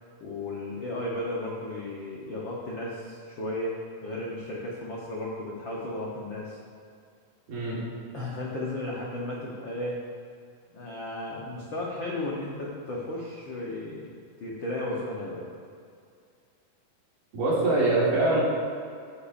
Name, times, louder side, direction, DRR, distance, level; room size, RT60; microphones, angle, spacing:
voice 1, 0.2-6.6 8.1-10.0 10.7-14.1 14.4-15.4, left 1 dB, 80° left, -4 dB, 1.0 m, -34 dB
voice 2, 7.5-7.8 17.3-18.4, right 2 dB, 80° right, -7 dB, 4.2 m, -23 dB
14.0 x 8.9 x 2.6 m, 2.4 s
omnidirectional pair, 3.8 m